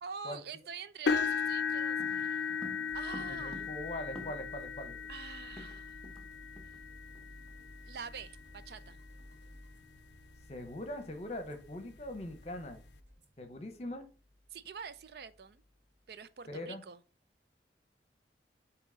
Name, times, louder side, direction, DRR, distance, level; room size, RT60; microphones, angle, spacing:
voice 1, 0.0-2.6 2.9-3.6 5.1-6.1 6.6-6.8 7.8-9.0 14.5-15.6 16.1-17.0, right 6 dB, 60° right, 0.4 m, -46 dB
sound 1, 1.1-9.1 9.7-10.0 10.4-10.5 11.9-12.0, left 5 dB, 75° left, 0.4 m, -36 dB
sound 2, 2.0-4.7 4.9-5.0 5.3-6.3 6.6-6.8 7.1-7.4, equal, 5° left, 1.0 m, -49 dB
sound 3, 2.9-16.3, equal, 85° right, 1.6 m, -55 dB
voice 2, 3.3-5.0 10.5-12.8 13.4-14.1 16.5-16.8, left 1 dB, 35° left, 0.9 m, -41 dB
8.2 x 3.0 x 3.9 m
head